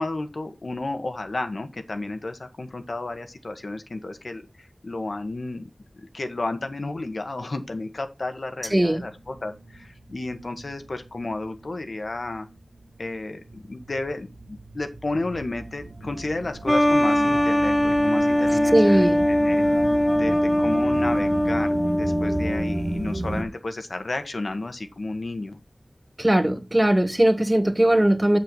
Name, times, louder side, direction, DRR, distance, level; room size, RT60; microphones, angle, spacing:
voice 1, 0.0-5.7 6.0-12.5 13.0-19.6 20.2-25.6, left 2 dB, 75° left, 1.6 m, -32 dB
sound 1, 8.6-23.4, right 1 dB, 70° right, 2.0 m, -35 dB
voice 2, 8.7-9.0 18.6-19.2 26.2-28.4, right 1 dB, 20° right, 1.6 m, -19 dB
sound 2, 16.7-23.0, left 1 dB, 15° left, 0.4 m, -21 dB
8.1 x 7.6 x 4.1 m
wide cardioid pair, 60°, 0 cm